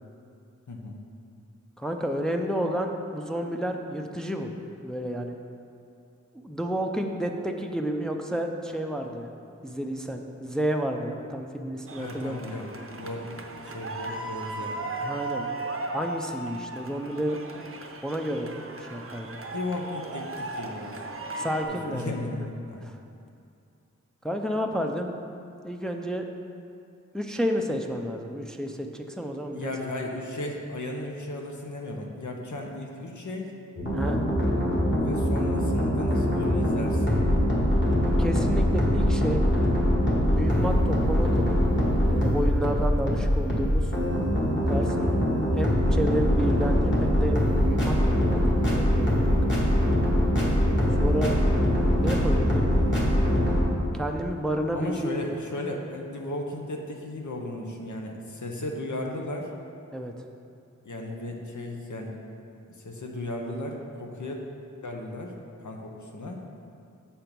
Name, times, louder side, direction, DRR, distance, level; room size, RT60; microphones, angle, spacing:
voice 1, 0.7-1.0 12.0-14.8 19.5-21.0 21.7-22.9 29.5-33.5 34.9-37.2 45.0-45.3 54.7-59.5 60.8-62.1 62.8-64.4 64.8-65.4 65.6-66.4, left 2 dB, 80° left, 1 dB, 0.8 m, -35 dB
voice 2, 1.8-4.5 4.8-5.4 6.3-9.3 9.6-12.4 15.0-15.5 15.9-17.4 18.0-18.5 18.8-19.4 21.4-22.2 22.8-23.0 24.2-25.1 25.6-26.2 27.1-29.7 33.9-34.2 38.2-39.5 40.3-41.8 42.1-43.9 44.7-45.0 45.6-49.4 51.0-51.4 52.0-52.7 53.9-55.2 59.9-60.1, equal, ahead, 3 dB, 0.4 m, -30 dB
sound 1, 11.9-21.7, right 2 dB, 45° right, 0.6 m, -36 dB
sound 2, 33.8-53.6, equal, 40° left, 1.7 m, -23 dB
7.1 x 4.5 x 5.2 m, 2.5 s
wide cardioid pair, 70°, 30 cm